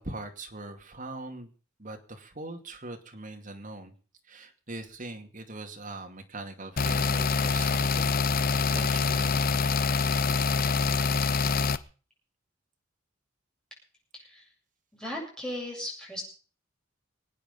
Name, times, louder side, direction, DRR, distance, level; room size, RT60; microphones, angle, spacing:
voice 1, 0.0-1.5 1.8-3.9 4.2-9.8, right 2 dB, 45° right, 4 dB, 2.5 m, -41 dB
sound 1, 6.8-11.8, left 4 dB, 50° left, 0.7 m, -25 dB
voice 2, 14.1-14.5 14.9-16.2, left 1 dB, 5° left, -2 dB, 7.3 m, -37 dB
23.5 x 9.1 x 5.4 m, 0.39 s
head